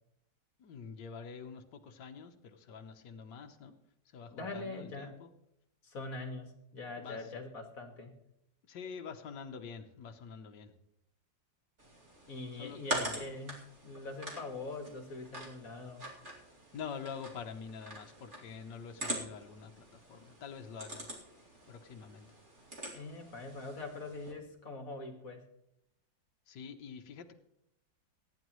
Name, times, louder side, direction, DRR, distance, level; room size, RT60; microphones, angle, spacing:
voice 1, 0.6-3.7 4.1-5.3 7.0-7.4 8.7-10.7 12.6-13.2 16.7-21.1 21.7-22.3 26.5-27.3, left 6 dB, 70° left, 5 dB, 1.7 m, -46 dB
voice 2, 4.3-5.2 5.8-8.1 12.3-16.1 22.9-25.4, left 2 dB, 50° left, 4 dB, 2.1 m, -43 dB
sound 1, 11.8-24.3, right 1 dB, 40° right, 3.1 m, -44 dB
24.0 x 10.5 x 3.1 m, 0.80 s
omnidirectional pair, 2.0 m